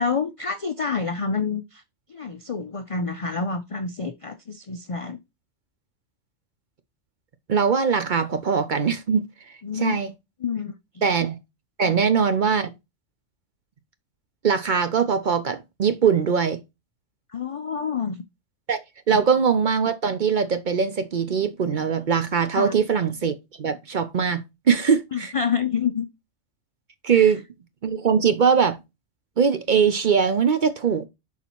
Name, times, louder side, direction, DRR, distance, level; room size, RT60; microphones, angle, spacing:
voice 1, 0.0-1.8 2.1-5.2 9.6-9.9 10.4-10.7 11.8-11.9 17.3-18.2 19.1-19.2 22.6-22.8 25.1-26.0 27.1-27.3, left 5 dB, 65° left, 0.3 m, -28 dB
voice 2, 7.5-9.2 9.7-10.1 11.0-11.4 11.8-12.7 14.4-16.6 18.7-18.8 19.1-25.3 27.0-27.4 27.8-28.8 29.4-31.1, right 6 dB, 50° right, 0.6 m, -21 dB
11.0 x 4.2 x 3.0 m
omnidirectional pair, 1.3 m